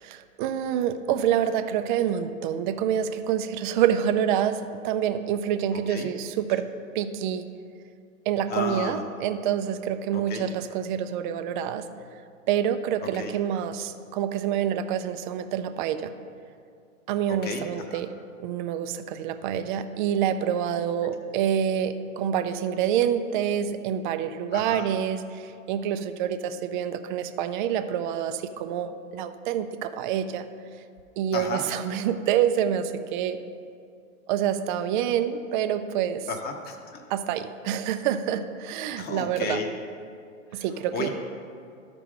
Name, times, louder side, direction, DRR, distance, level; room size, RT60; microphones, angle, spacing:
voice 1, 0.0-6.7 6.9-7.5 8.3-11.9 12.5-16.1 17.1-18.1 18.4-30.5 31.2-33.4 34.3-36.3 37.1-39.6 40.5-41.1, right 9 dB, 40° right, 9 dB, 0.5 m, -27 dB
voice 2, 5.7-6.1 8.5-9.0 10.1-10.4 13.0-13.3 17.3-18.0 21.0-21.2 24.5-24.8 31.3-31.6 36.3-37.0 39.0-39.7 40.5-40.6 40.9-41.1, left 4 dB, 25° left, 4 dB, 0.9 m, -33 dB
13.0 x 4.9 x 3.7 m, 2.3 s
hypercardioid pair, 115°, 40 cm